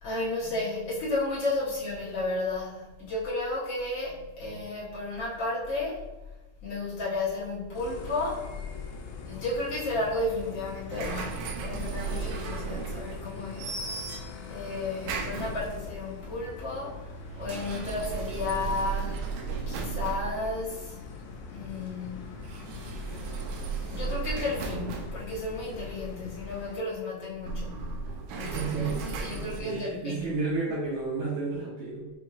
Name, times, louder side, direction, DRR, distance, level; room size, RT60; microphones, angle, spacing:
voice 1, 0.0-6.0 6.6-8.5 9.2-13.7 14.5-19.2 19.7-21.0 21.5-22.2 23.8-28.0 28.4-30.4, left 2 dB, 70° left, -8 dB, 1.1 m, -33 dB
sound 1, 7.7-26.8, left 4 dB, 85° left, 2.4 m, -43 dB
sound 2, 10.9-13.3 13.6-14.5 15.0-16.0 17.2-20.9 22.3-26.3 27.3-29.6, right 5 dB, 90° right, 1.6 m, -35 dB
voice 2, 28.4-29.0 29.3-32.1, right 4 dB, 70° right, -7 dB, 2.1 m, -32 dB
7.0 x 2.8 x 2.4 m, 1.1 s
omnidirectional pair, 3.9 m